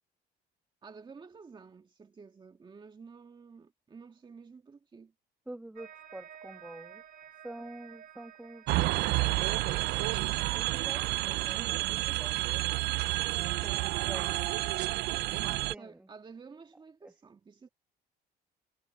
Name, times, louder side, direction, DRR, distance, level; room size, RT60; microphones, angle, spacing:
voice 1, 0.8-5.1 9.7-10.1 11.6-12.1 15.4-17.7, right 5 dB, 25° right, 1.9 m, -51 dB
voice 2, 5.5-7.0 7.3-12.4 13.6-14.7 15.3-16.1 17.0-17.1, right 1 dB, 5° right, 1.3 m, -48 dB
sound 1, 5.8-11.6, right 9 dB, 55° right, 1.3 m, -53 dB
sound 2, 8.7-15.7, right 20 dB, 80° right, 0.5 m, -30 dB
cardioid pair, 110°, 17 cm